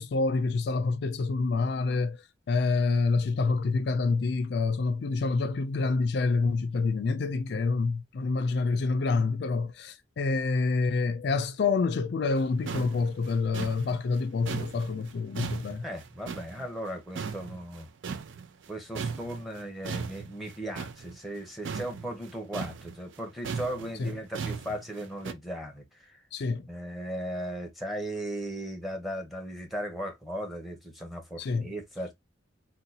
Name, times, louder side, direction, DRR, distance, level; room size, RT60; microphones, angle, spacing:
voice 1, 0.0-2.2 2.5-15.8 24.0-24.1 26.3-26.6 31.4-31.7, left 4 dB, 60° left, 0.4 m, -27 dB
sound 1, 12.4-12.5 12.7-16.9 17.1-18.7 18.9-25.3, right 5 dB, 75° right, 0.4 m, -37 dB
voice 2, 15.8-17.9 18.7-26.2 26.6-32.1, right 1 dB, ahead, 0.8 m, -37 dB
3.8 x 2.3 x 2.7 m
head